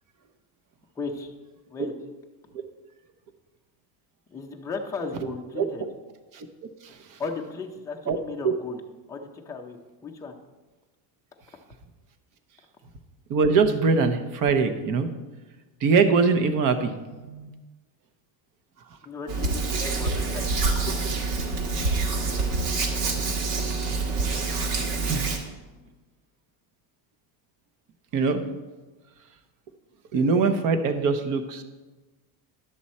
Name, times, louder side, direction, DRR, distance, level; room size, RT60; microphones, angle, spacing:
voice 1, 1.0-1.3 1.7-1.9 4.3-5.9 7.2-8.8 9.1-10.3 19.0-20.6, left 4 dB, 5° left, 1 dB, 0.4 m, -35 dB
voice 2, 6.8-7.2 8.1-8.2 8.4-8.5 13.3-15.1 15.8-17.5 23.8-24.1 25.1-25.3 28.1-28.4 30.1-31.6, right 4 dB, 45° right, 9 dB, 0.8 m, -23 dB
Hands, 19.3-25.4, right 3 dB, 75° right, 1.8 m, -26 dB
11.0 x 7.6 x 4.2 m, 1.2 s
cardioid pair, 165°, 47 cm